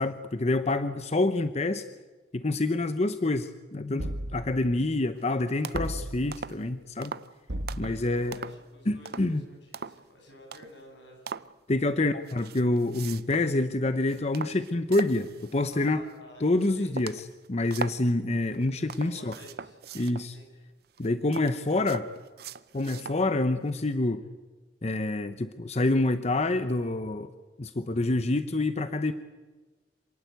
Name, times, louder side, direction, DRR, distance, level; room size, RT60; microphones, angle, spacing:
voice 1, 0.0-1.8 2.3-7.1 7.8-8.4 8.9-9.4 11.7-16.0 16.4-19.3 19.9-20.4 21.0-22.0 22.7-24.2 24.8-27.3 27.6-29.1, left 2 dB, 40° left, 10 dB, 0.8 m, -27 dB
sound 1, 4.0-4.7 5.7-6.5 7.5-8.2, right 1 dB, 85° right, 1.6 m, -35 dB
sound 2, 5.1-5.3 5.6-6.0 6.3-6.6 7.0-7.3 7.7-8.0 8.3-8.7 9.0-9.4 9.7-10.1 10.5-10.8 11.3-11.5 12.2-13.5 13.9-16.1 16.6-16.7 17.0-18.0 18.5-20.3 20.9-23.2 23.7-23.8, right 5 dB, 60° right, 0.7 m, -40 dB
voice 2, 5.2-6.1 7.8-11.2 15.7-16.5 16.7-16.9 18.8-19.8 20.2-20.7 21.0-21.1 21.7-22.0, left 1 dB, 90° left, 2 dB, 7.8 m, -51 dB
27.0 x 18.5 x 8.3 m, 1.3 s
head